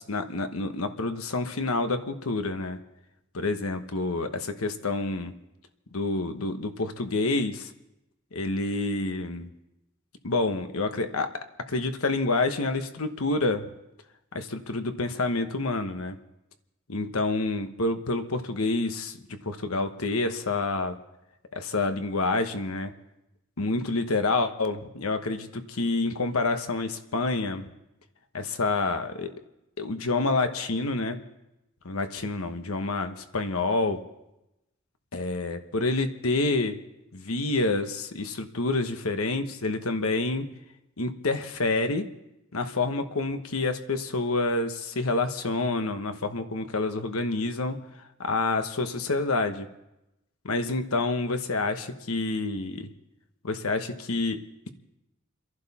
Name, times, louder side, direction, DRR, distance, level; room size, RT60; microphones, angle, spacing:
voice 1, 0.0-2.8 3.3-5.3 5.9-7.7 8.3-9.5 10.2-13.7 14.3-16.2 16.9-21.0 21.5-22.9 23.6-27.7 28.3-29.3 29.8-31.2 31.8-34.1 35.1-36.8 37.1-40.5 41.0-42.1 42.5-47.8 48.2-49.7 50.4-52.9 53.4-54.7, left 3 dB, 80° left, 8 dB, 1.2 m, -28 dB
29.5 x 11.5 x 4.2 m, 0.93 s
head